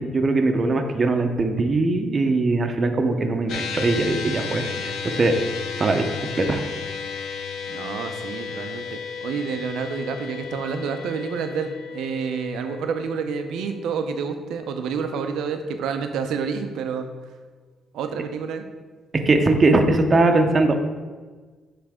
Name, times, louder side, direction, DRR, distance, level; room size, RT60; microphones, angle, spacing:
voice 1, 0.0-4.6 5.0-5.3 5.8-6.0 6.4-6.6 19.3-20.8, right 2 dB, 35° right, 5 dB, 0.7 m, -20 dB
sound 1, 3.5-16.0, left 6 dB, 80° left, 0.6 m, -34 dB
voice 2, 7.7-17.1 17.9-18.6, right 6 dB, 85° right, 7 dB, 0.5 m, -29 dB
9.4 x 3.3 x 3.6 m, 1.4 s
cardioid pair, 90°, 0 cm